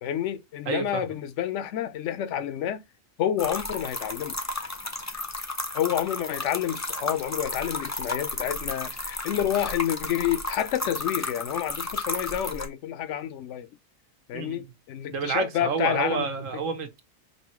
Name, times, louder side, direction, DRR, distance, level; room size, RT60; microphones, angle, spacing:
voice 1, 0.0-2.8 3.2-4.4 5.7-13.7 14.3-16.2, left 10 dB, 65° left, 0.9 m, -29 dB
voice 2, 0.7-1.1 14.3-14.7 15.1-17.0, right 5 dB, 70° right, 1.3 m, -29 dB
sound 1, 3.4-12.7, left 2 dB, 20° left, 0.5 m, -33 dB
5.3 x 2.7 x 3.0 m
omnidirectional pair, 1.4 m